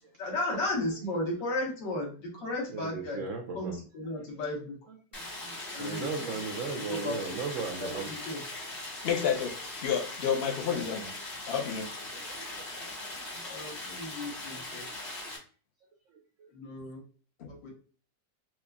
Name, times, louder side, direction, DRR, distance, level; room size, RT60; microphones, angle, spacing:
voice 1, 0.2-3.3 3.5-4.8 5.7-6.1 6.7-7.4 7.8-8.4 13.4-14.9 16.5-17.0 17.6-17.7, left 2 dB, 80° left, 1.8 m, -34 dB
voice 2, 2.7-3.8 4.0-4.6 4.9-8.4 12.1-13.5 14.4-14.6 16.4-16.5, right 4 dB, 85° right, 0.7 m, -38 dB
Stream, 5.1-15.4, left 2 dB, 30° left, 0.9 m, -40 dB
voice 3, 9.0-11.2 11.5-11.9 17.4-17.5, left 7 dB, 65° left, 0.5 m, -30 dB
4.5 x 2.4 x 2.2 m
omnidirectional pair, 1.9 m